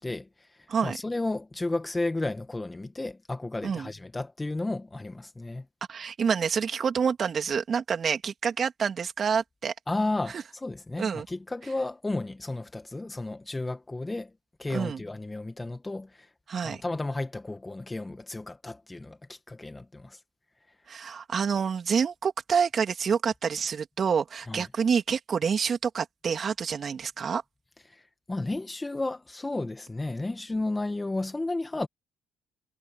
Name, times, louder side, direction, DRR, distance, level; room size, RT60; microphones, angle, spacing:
voice 1, 0.0-5.6 9.9-14.3 14.6-16.3 16.6-20.2 24.5-24.6 27.9-31.9, left 2 dB, 15° left, 1.7 m, -33 dB
voice 2, 5.9-9.7 11.0-11.3 14.7-15.0 16.5-16.8 20.9-27.4, right 6 dB, 45° right, 3.1 m, -27 dB
supercardioid pair, 80°, 0 cm